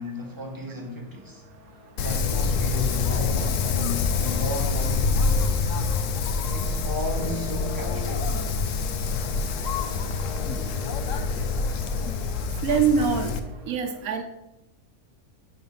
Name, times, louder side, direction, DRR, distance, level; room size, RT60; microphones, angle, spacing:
voice 1, 0.0-1.4 2.0-5.5 6.5-8.4, left 1 dB, 20° right, 0.8 m, -35 dB
sound 1, 1.0-13.7, left 1 dB, 25° left, 1.5 m, -41 dB
Wind, 2.0-13.4, left 5 dB, 65° left, 0.9 m, -26 dB
voice 2, 12.6-13.3 13.7-14.2, right 6 dB, 75° right, 1.3 m, -23 dB
5.8 x 4.3 x 5.4 m
omnidirectional pair, 1.6 m